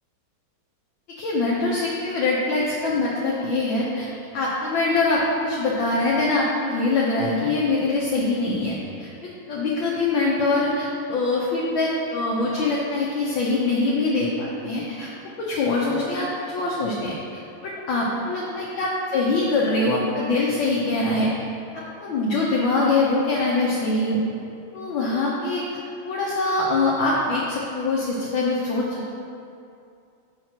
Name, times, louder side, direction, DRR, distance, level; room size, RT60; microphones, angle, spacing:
voice 1, 1.2-4.1 4.3-9.1 9.5-15.1 15.4-21.3 21.7-24.2 24.7-25.6 26.0-29.2, left 2 dB, 65° left, -5 dB, 1.5 m, -23 dB
6.2 x 4.2 x 5.9 m, 2.5 s
omnidirectional pair, 2.4 m